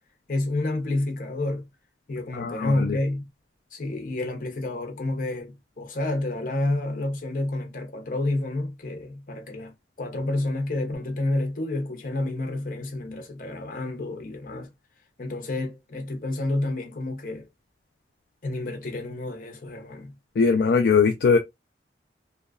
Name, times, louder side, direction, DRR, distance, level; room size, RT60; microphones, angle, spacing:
voice 1, 0.3-1.7 2.1-3.3 3.7-9.7 10.0-14.7 15.2-17.5 18.4-20.1, left 2 dB, 50° left, 0.8 m, -29 dB
voice 2, 2.3-3.0 20.4-21.4, left 5 dB, 65° left, 0.3 m, -20 dB
2.7 x 2.3 x 2.2 m
head